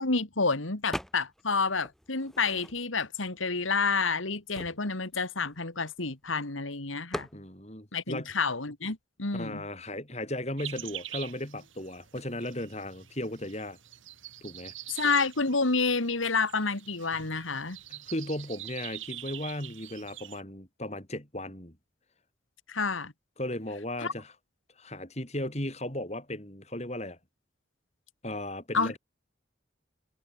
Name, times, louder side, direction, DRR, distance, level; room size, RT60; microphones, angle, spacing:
voice 1, 0.0-7.3 7.9-9.6 14.9-17.8 22.7-23.1 24.0-24.1 28.7-29.0, left 4 dB, 90° left, 2.6 m, -29 dB
sound 1, 0.9-1.5 1.8-3.1 3.7-3.8 4.0-6.3 7.1-7.4, equal, ahead, 1.0 m, -41 dB
voice 2, 7.3-8.3 9.3-13.8 14.4-14.7 17.9-21.8 23.4-24.3 24.8-27.2 28.2-29.0, left 1 dB, 35° left, 5.8 m, -36 dB
sound 2, 10.6-20.4, right 13 dB, 85° right, 3.0 m, -45 dB
head